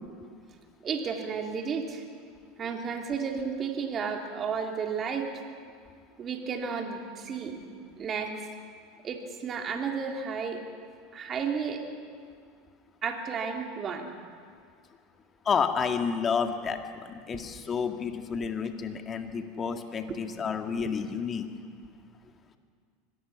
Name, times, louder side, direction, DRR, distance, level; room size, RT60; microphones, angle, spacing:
voice 1, 0.8-2.0 2.6-5.5 6.2-7.6 8.0-8.4 9.0-10.6 11.1-11.8 13.0-14.1 17.3-17.4 20.1-20.2, right 6 dB, 35° right, 3 dB, 3.0 m, -32 dB
voice 2, 15.5-21.5, left 6 dB, 30° left, 6 dB, 1.9 m, -30 dB
25.0 x 18.0 x 6.1 m, 2.1 s
hypercardioid pair, 80°, 0 cm